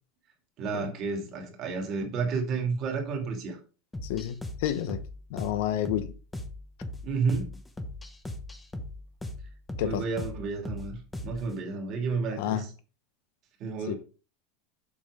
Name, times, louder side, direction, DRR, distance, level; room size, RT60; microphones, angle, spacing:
voice 1, 0.6-3.6 7.0-7.6 9.8-11.0 11.2-12.7 13.6-13.9, right 4 dB, 35° right, 2.5 m, -31 dB
sound 1, 3.9-11.5, left 1 dB, 5° left, 1.0 m, -39 dB
voice 2, 4.0-4.4 4.6-5.0 5.3-6.1 9.8-10.2 12.4-12.6 13.9-14.0, left 11 dB, 65° left, 1.1 m, -30 dB
7.5 x 6.3 x 5.0 m
supercardioid pair, 170°, 0 cm